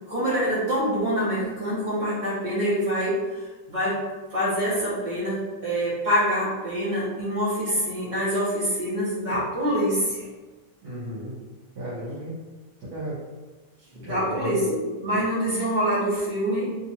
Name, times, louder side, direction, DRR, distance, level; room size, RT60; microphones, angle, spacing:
voice 1, 0.1-4.0 4.3-10.3 13.9-16.8, equal, 25° right, -9 dB, 1.6 m, -25 dB
voice 2, 10.8-11.3 11.7-12.4 12.8-13.2 14.1-14.7, right 1 dB, 60° right, -11 dB, 1.9 m, -34 dB
3.9 x 3.3 x 2.8 m, 1.2 s
omnidirectional pair, 2.0 m